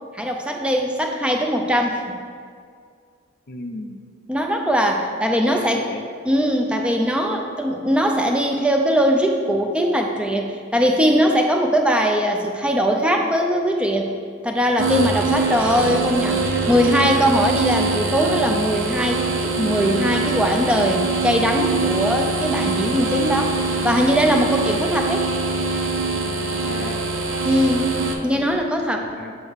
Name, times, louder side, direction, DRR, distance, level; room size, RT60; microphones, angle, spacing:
voice 1, 0.1-2.0 4.3-5.8 6.3-14.1 14.4-23.6 23.8-25.3 27.4-29.1, equal, 5° right, 2 dB, 0.4 m, -20 dB
voice 2, 3.5-4.0 5.4-6.1 26.7-27.1 28.2-28.6 28.9-29.3, left 1 dB, 50° left, 5 dB, 0.5 m, -34 dB
sound 1, 14.8-28.1, right 3 dB, 70° right, 0.6 m, -23 dB
8.0 x 4.7 x 3.5 m, 2.1 s
head